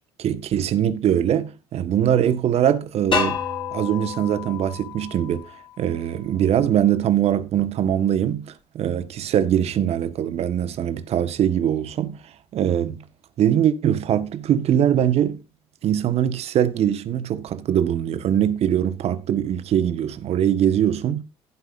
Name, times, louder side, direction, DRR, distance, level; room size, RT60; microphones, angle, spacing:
voice 1, 0.2-3.4 3.7-5.5 5.8-12.2 12.5-13.0 13.4-15.4 15.8-21.2, right 10 dB, 55° right, 1.5 m, -22 dB
sound 1, 3.1-6.0, left 6 dB, 40° left, 6.9 m, -29 dB
16.5 x 8.2 x 2.6 m
hypercardioid pair, 60°, 13 cm